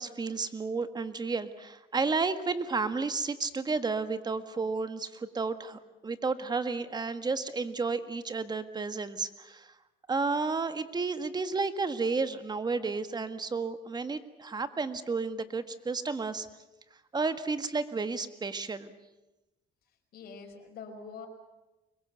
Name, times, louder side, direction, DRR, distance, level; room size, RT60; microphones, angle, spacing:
voice 1, 0.0-9.7 10.1-16.5 17.1-18.9, right 4 dB, 25° right, 11 dB, 1.7 m, -32 dB
voice 2, 20.1-21.3, left 5 dB, 65° left, 3 dB, 5.6 m, -44 dB
25.0 x 22.0 x 8.1 m, 1.0 s
cardioid pair, 110°, 17 cm